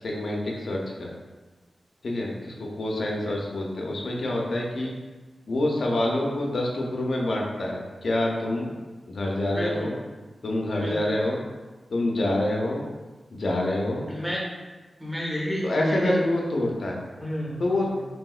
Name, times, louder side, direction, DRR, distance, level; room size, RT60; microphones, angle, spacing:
voice 1, 0.0-1.1 2.0-4.9 5.5-8.8 9.1-10.0 10.4-11.4 11.9-12.8 13.3-14.0 15.6-17.0 17.6-17.9, left 1 dB, 60° left, -1 dB, 0.4 m, -26 dB
voice 2, 9.5-9.9 10.8-11.0 14.1-14.4 15.0-16.1 17.2-17.6 17.9-18.0, equal, 5° right, -4 dB, 0.6 m, -30 dB
3.4 x 2.7 x 2.3 m, 1.3 s
wide cardioid pair, 150°, 0 cm